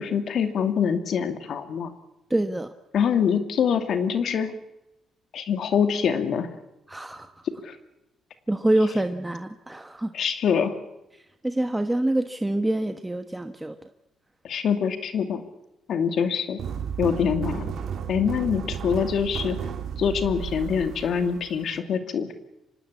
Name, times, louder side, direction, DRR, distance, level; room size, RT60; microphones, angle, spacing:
voice 1, 0.0-1.9 2.9-4.5 5.3-6.5 7.6-7.8 10.1-10.8 14.4-15.4 15.9-16.6 17.0-17.7 18.1-19.6 20.0-22.3, left 7 dB, 65° left, 8 dB, 2.5 m, -24 dB
voice 2, 2.3-2.7 6.9-7.4 8.5-10.1 11.4-13.7, right 1 dB, 10° right, 7 dB, 1.2 m, -26 dB
sound 1, 16.6-21.8, right 7 dB, 70° right, 2.5 m, -33 dB
25.0 x 19.0 x 8.5 m, 0.92 s
cardioid pair, 90°, 0 cm